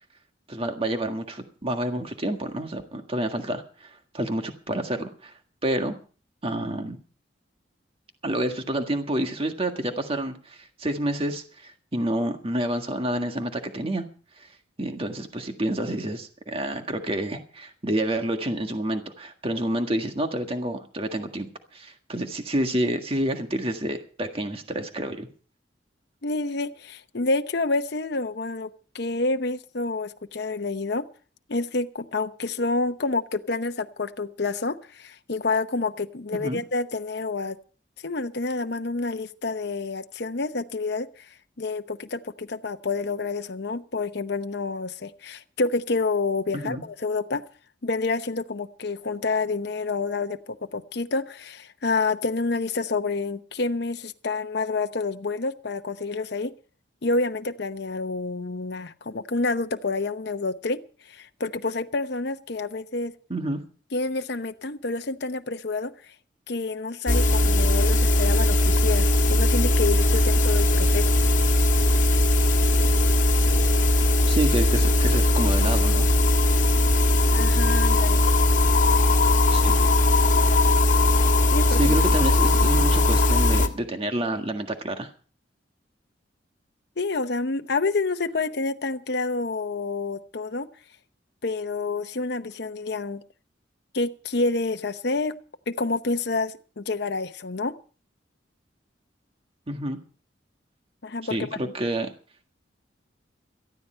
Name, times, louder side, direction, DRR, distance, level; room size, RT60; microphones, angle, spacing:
voice 1, 0.5-5.3 5.6-5.9 6.4-7.0 8.2-14.1 14.4-14.5 14.8-25.3 36.3-36.6 46.5-46.8 63.3-63.6 74.3-76.1 79.5-79.9 81.7-85.1 99.7-100.0 101.3-102.1, right 1 dB, 30° right, 5 dB, 1.7 m, -28 dB
voice 2, 26.2-28.7 28.9-31.1 31.5-37.6 38.0-41.3 41.6-47.4 47.8-56.5 57.0-63.1 63.9-65.9 66.5-71.1 77.3-78.2 81.5-82.0 87.0-90.7 91.4-93.2 93.9-95.4 95.7-97.7 101.0-101.4, left 3 dB, 60° left, 8 dB, 0.9 m, -28 dB
sound 1, 67.1-83.7, left 1 dB, 45° left, 1.7 m, -19 dB
18.0 x 13.5 x 4.4 m, 0.39 s
head